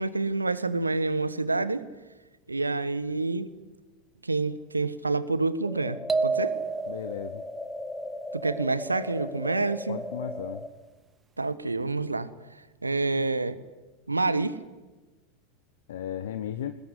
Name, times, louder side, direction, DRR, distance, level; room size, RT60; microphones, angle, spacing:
voice 1, 0.0-1.8 2.5-3.5 4.2-6.0 6.2-6.5 8.3-10.0 11.4-12.3 12.8-13.6 14.1-14.6, right 3 dB, 85° right, 15 dB, 1.3 m, -27 dB
sound 1, 5.7-10.7, left 1 dB, 10° left, 2.4 m, -37 dB
sound 2, 6.1-7.3, right 5 dB, 20° right, 1.4 m, -28 dB
voice 2, 6.9-7.4 9.9-10.7 15.9-16.8, left 10 dB, 65° left, 10 dB, 1.1 m, -35 dB
21.5 x 20.5 x 9.9 m, 1.2 s
figure-of-eight pair, 85°, 0 cm